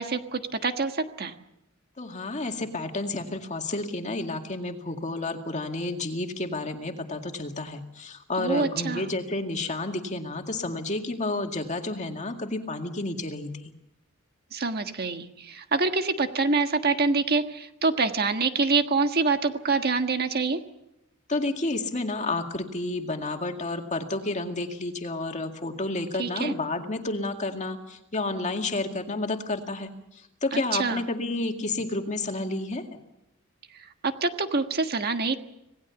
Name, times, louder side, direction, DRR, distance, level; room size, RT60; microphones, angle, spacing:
voice 1, 0.0-1.3 8.4-9.1 14.5-20.6 26.2-26.5 30.5-31.0 34.0-35.4, right 4 dB, 50° right, 7 dB, 1.5 m, -26 dB
voice 2, 2.0-13.7 21.3-32.8, left 2 dB, 35° left, 4 dB, 2.1 m, -31 dB
27.0 x 18.5 x 7.1 m, 0.87 s
head